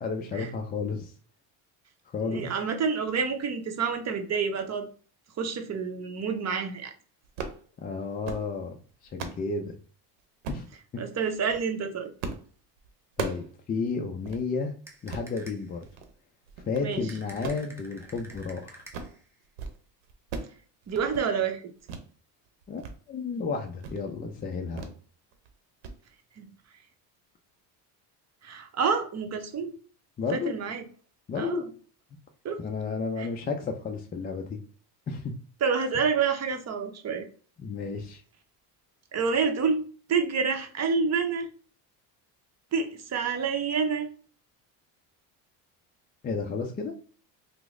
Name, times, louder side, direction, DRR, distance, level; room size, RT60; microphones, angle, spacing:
voice 1, 0.0-1.1 2.1-2.5 7.8-8.8 9.0-9.8 10.5-10.7 10.9-11.0 13.2-14.7 15.0-15.9 16.7-18.8 22.7-22.8 23.1-24.9 30.2-30.5 31.3-31.6 32.6-34.6 35.1-35.3 37.6-38.2 46.2-46.9, left 4 dB, 20° left, 3 dB, 0.3 m, -32 dB
voice 2, 2.2-4.9 5.4-6.9 11.0-12.1 16.8-17.1 20.9-21.6 26.4-26.5 28.4-29.7 30.3-30.8 31.4-31.6 32.4-32.6 33.2-33.3 35.6-37.3 39.1-41.5 42.7-44.1, right 5 dB, 35° right, 6 dB, 0.7 m, -28 dB
sound 1, 7.2-7.6 8.1-8.5 8.9-9.4 10.4-10.7 11.3-11.6 12.2-12.5 12.8-13.5 13.8-13.9 14.2-14.4 14.9-15.3 15.8-16.1 16.5-16.9 17.3-18.5 18.8-19.2 19.4-19.8 20.0-20.6 20.8-21.3 21.9-22.1 22.5-22.9 23.3-23.4 23.8-24.0 24.8-25.0 25.3-25.5 25.8-26.0, right 4 dB, 70° right, 0.8 m, -38 dB
sound 2, 14.9-15.8 17.1-19.3, right 1 dB, 5° right, 0.8 m, -50 dB
3.0 x 2.0 x 3.5 m, 0.41 s
supercardioid pair, 85°, 48 cm